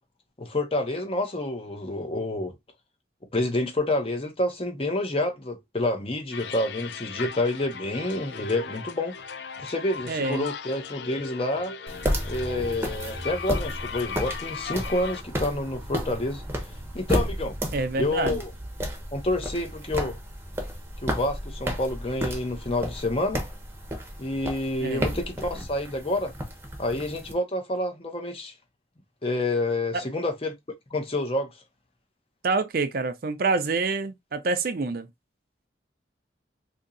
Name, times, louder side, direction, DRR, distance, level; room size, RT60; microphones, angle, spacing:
voice 1, 0.4-2.5 3.3-9.2 9.6-11.7 12.2-16.4 16.9-17.5 17.9-18.5 19.1-20.2 21.0-23.4 24.2-26.3 26.8-28.5 29.2-30.5 30.9-31.5, left 2 dB, 30° left, 0.7 m, -28 dB
sound 1, 6.3-15.2, left 6 dB, 70° left, 0.4 m, -38 dB
voice 2, 10.1-10.5 17.7-18.4 24.8-25.1 29.9-30.1 32.4-35.1, right 3 dB, 55° right, 0.5 m, -27 dB
sound 2, 11.9-27.3, equal, 15° right, 0.8 m, -32 dB
2.8 x 2.6 x 3.8 m
head